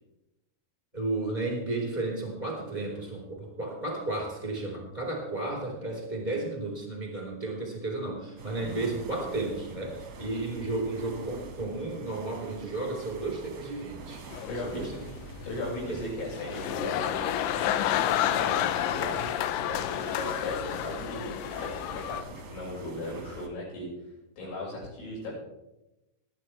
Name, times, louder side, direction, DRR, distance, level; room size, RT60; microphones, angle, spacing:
voice 1, 0.9-14.2 14.7-15.0 15.9-16.0, right 2 dB, 10° left, -1 dB, 3.3 m, -33 dB
sound 1, 8.4-23.5, right 3 dB, 55° right, 2.1 m, -45 dB
sound 2, 14.3-22.2, left 11 dB, 85° left, 2.7 m, -30 dB
voice 2, 14.5-14.8 15.4-19.2 19.6-21.3 21.6-23.9 24.4-25.3, left 2 dB, 60° left, -5 dB, 8.3 m, -37 dB
21.0 x 10.5 x 3.4 m, 0.93 s
omnidirectional pair, 5.8 m